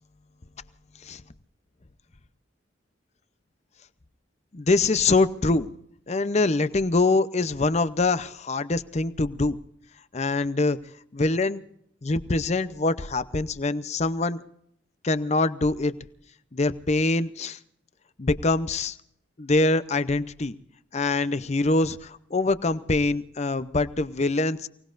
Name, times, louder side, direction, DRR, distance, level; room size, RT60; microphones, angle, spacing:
voice 1, 4.5-5.7 6.1-9.6 10.1-10.8 11.1-11.6 12.0-14.4 15.0-15.9 16.5-17.6 18.2-19.0 19.4-20.5 20.9-24.7, left 3 dB, 35° left, 14 dB, 0.7 m, -24 dB
29.5 x 19.0 x 2.6 m, 0.72 s
head